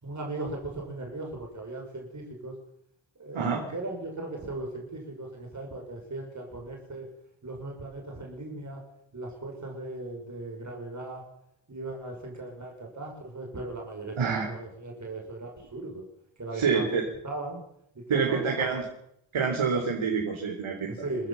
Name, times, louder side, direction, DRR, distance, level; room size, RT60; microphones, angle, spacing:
voice 1, 0.0-2.6 3.2-7.1 7.4-8.8 9.1-11.2 11.7-16.1 16.4-16.9 17.2-17.6 17.9-18.9 20.9-21.3, right 2 dB, 35° right, 0 dB, 5.9 m, -37 dB
voice 2, 14.2-14.5 16.5-17.0 18.1-18.8 19.3-20.9, right 5 dB, 70° right, 1 dB, 4.0 m, -27 dB
26.0 x 15.5 x 7.2 m, 0.76 s
wide cardioid pair, 100°, 49 cm